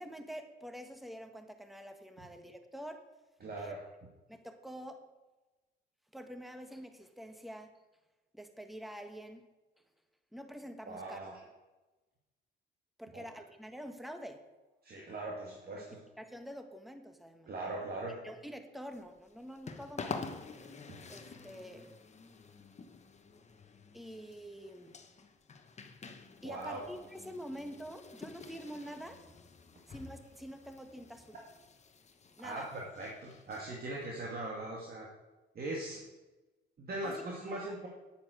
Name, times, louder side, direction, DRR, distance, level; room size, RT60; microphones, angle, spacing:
voice 1, 0.0-3.0 3.6-3.8 4.3-5.0 6.1-7.7 8.3-9.4 10.3-11.2 13.0-14.4 15.8-15.9 16.2-17.5 18.2-20.2 21.1-21.9 23.9-24.9 26.4-29.2 29.9-31.4 32.4-32.7 37.0-37.8, equal, ahead, 7 dB, 1.3 m, -46 dB
voice 2, 3.4-3.8 10.9-11.4 13.1-13.3 14.8-16.0 17.5-18.2 20.9-21.0 26.4-26.8 32.4-35.1 35.5-36.0 36.8-37.9, right 2 dB, 50° right, -2 dB, 2.2 m, -40 dB
sound 1, 18.9-34.1, left 4 dB, 35° left, 1.1 m, -49 dB
9.8 x 8.5 x 6.5 m, 1.1 s
cardioid pair, 90°, 20 cm